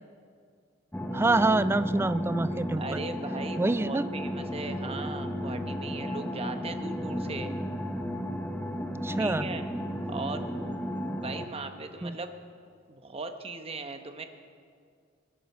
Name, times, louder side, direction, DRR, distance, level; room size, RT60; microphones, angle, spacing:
sound 1, 0.9-11.5, equal, 10° left, 0.8 m, -33 dB
voice 1, 1.1-3.0 3.6-4.0 9.0-9.5 12.0-12.2, right 2 dB, 10° right, 14 dB, 0.3 m, -26 dB
voice 2, 2.7-7.5 9.2-9.6 10.1-10.5 11.2-12.3 12.9-14.2, right 3 dB, 30° right, 7 dB, 0.9 m, -38 dB
22.0 x 7.6 x 6.6 m, 2.2 s
head